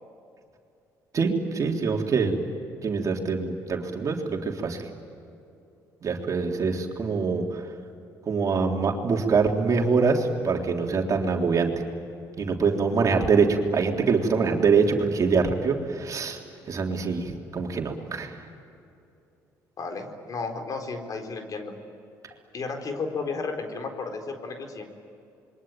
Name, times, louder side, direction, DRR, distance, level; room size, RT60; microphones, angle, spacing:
voice 1, 1.1-2.3 2.8-4.8 6.0-7.6 8.3-11.7 12.4-16.4 16.7-18.3, right 5 dB, 50° right, 2 dB, 3.6 m, -24 dB
voice 2, 19.8-21.7 22.5-24.9, left 4 dB, 50° left, 5 dB, 4.1 m, -33 dB
27.0 x 23.0 x 9.2 m, 2.6 s
supercardioid pair, 75°, 8 cm